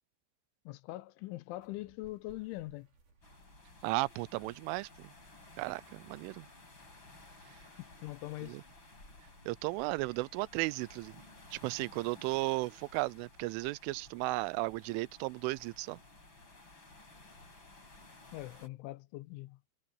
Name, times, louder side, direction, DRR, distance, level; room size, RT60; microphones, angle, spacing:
voice 1, 0.7-2.9 7.8-8.6 18.3-19.6, left 18 dB, 85° left, 3.1 m, -42 dB
sound 1, 1.5-15.3, right 3 dB, 50° right, 7.0 m, -68 dB
sound 2, 3.2-18.7, left 2 dB, 25° left, 7.6 m, -56 dB
voice 2, 3.8-5.1 5.6-6.5 8.5-8.6 9.5-11.1 11.5-16.0, right 22 dB, 90° right, 3.1 m, -35 dB
omnidirectional pair, 5.5 m